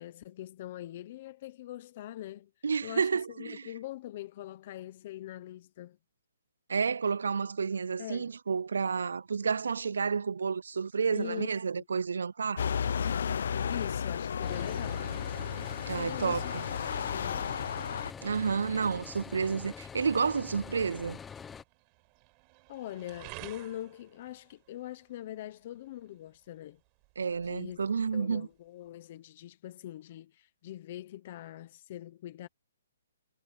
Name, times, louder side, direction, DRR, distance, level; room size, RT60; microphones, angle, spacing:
voice 1, 0.0-2.5 2.8-6.0 8.0-8.3 11.1-11.5 11.8-11.9 13.0-13.2 13.7-15.1 15.9-16.5 16.9-17.6 22.7-26.8 27.4-27.8 28.1-32.5, left 13 dB, 30° left, 1.0 m, -43 dB
voice 2, 2.6-3.6 6.7-12.7 15.9-16.6 18.2-21.2 27.2-28.5, right 5 dB, 85° right, 0.3 m, -30 dB
sound 1, 12.6-18.1, left 7 dB, 55° left, 0.6 m, -33 dB
sound 2, 14.4-21.6, left 6 dB, 10° left, 0.9 m, -45 dB
sound 3, 20.3-28.9, right 31 dB, 20° right, 6.0 m, -56 dB
hypercardioid pair, 170°, 0 cm